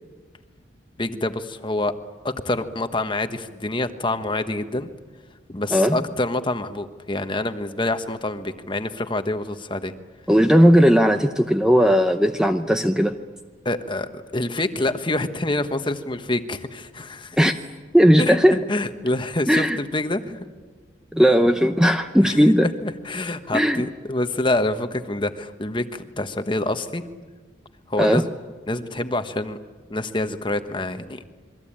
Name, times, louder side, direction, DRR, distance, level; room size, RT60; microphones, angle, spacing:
voice 1, 1.0-2.0 2.4-4.9 5.5-9.9 13.6-17.4 18.2-20.4 22.2-22.4 22.8-27.0 27.9-28.3 28.7-29.6 29.9-31.2, left 2 dB, 25° left, 8 dB, 1.2 m, -26 dB
voice 2, 5.7-6.0 10.3-13.2 17.4-17.5 17.9-18.6 19.5-19.8 21.1-22.7 23.5-23.8 28.0-28.2, equal, 5° right, 6 dB, 0.8 m, -17 dB
27.5 x 23.0 x 8.8 m, 1.4 s
head